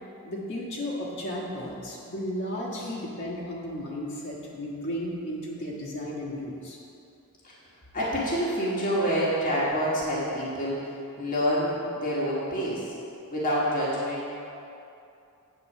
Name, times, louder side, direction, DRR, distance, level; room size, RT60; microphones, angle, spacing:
voice 1, 0.2-6.8, equal, 55° left, -6 dB, 1.6 m, -34 dB
voice 2, 7.4-12.9 13.3-14.4, equal, 40° left, -7 dB, 1.6 m, -28 dB
8.6 x 4.3 x 7.3 m, 2.6 s
head